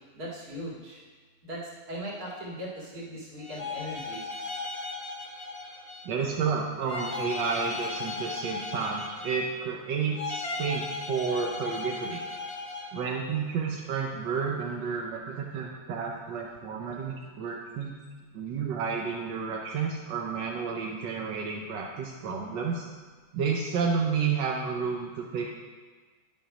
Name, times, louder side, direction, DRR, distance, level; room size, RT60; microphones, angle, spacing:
voice 1, 0.1-1.0 1.4-4.2, equal, 60° right, -6 dB, 2.7 m, -39 dB
sound 1, 3.4-6.2 6.9-9.7 10.1-13.1, left 3 dB, 35° left, 0.6 m, -36 dB
voice 2, 6.0-12.2 12.9-18.0 18.3-22.9 23.3-25.5, right 5 dB, 90° right, 0 dB, 1.5 m, -31 dB
10.0 x 5.7 x 5.0 m, 1.4 s
omnidirectional pair, 1.9 m